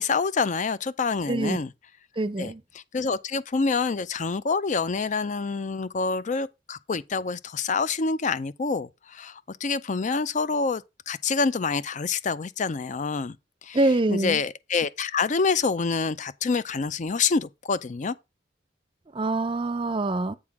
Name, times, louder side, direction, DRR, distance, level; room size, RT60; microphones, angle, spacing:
voice 1, 0.0-1.7 2.4-13.4 13.6-13.8 14.1-18.2, left 4 dB, 45° left, 0.5 m, -27 dB
voice 2, 1.3-1.6 2.2-2.6 13.7-14.4 19.1-20.4, right 2 dB, 30° right, 0.6 m, -25 dB
8.6 x 3.7 x 5.9 m
head